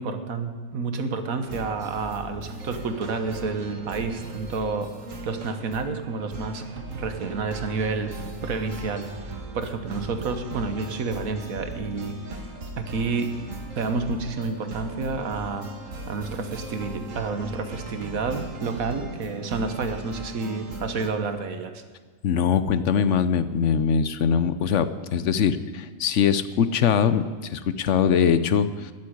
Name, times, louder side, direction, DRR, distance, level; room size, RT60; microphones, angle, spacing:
voice 1, 0.0-4.9 5.2-12.2 12.8-13.3 13.7-15.7 16.1-21.8, right 4 dB, 85° right, 8 dB, 1.6 m, -29 dB
sound 1, 1.5-21.1, right 2 dB, 70° right, 2.0 m, -38 dB
voice 2, 22.2-28.9, left 7 dB, 65° left, 13 dB, 1.0 m, -22 dB
13.0 x 7.6 x 9.6 m, 1.5 s
omnidirectional pair, 1.4 m